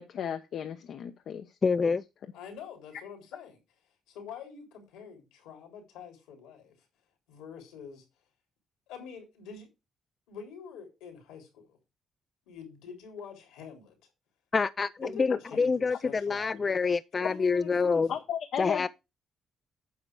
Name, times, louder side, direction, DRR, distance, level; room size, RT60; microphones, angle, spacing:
voice 1, 0.0-1.5 15.3-15.4 17.2-17.3 18.1-18.9, left 8 dB, 70° left, 0.9 m, -34 dB
voice 2, 1.6-2.0 14.5-18.1 18.6-18.9, left 4 dB, 40° left, 0.4 m, -27 dB
voice 3, 2.3-3.6 4.1-6.8 7.3-8.0 8.9-9.7 10.3-11.8 12.5-14.0 15.0-16.8 17.1-18.2, left 6 dB, 85° left, 3.6 m, -45 dB
9.6 x 6.6 x 4.7 m
supercardioid pair, 50°, 0 cm